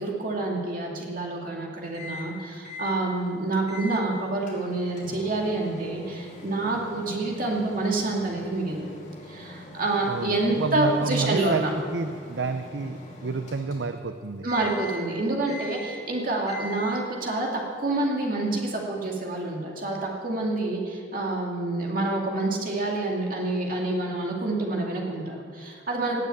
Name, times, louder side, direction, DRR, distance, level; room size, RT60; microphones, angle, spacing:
voice 1, 0.0-8.9 9.3-11.7 14.4-26.2, right 2 dB, 45° right, -1 dB, 2.5 m, -27 dB
Microwave oven, 1.9-2.3 2.6-3.0 3.7-4.0 4.5-14.1 14.5-15.1 15.5-16.1 16.5-17.1, left 2 dB, 40° left, 3.0 m, -42 dB
voice 2, 10.1-11.6 11.9-14.5, right 4 dB, 65° right, 8 dB, 0.6 m, -29 dB
18.5 x 6.8 x 8.5 m, 2.1 s
head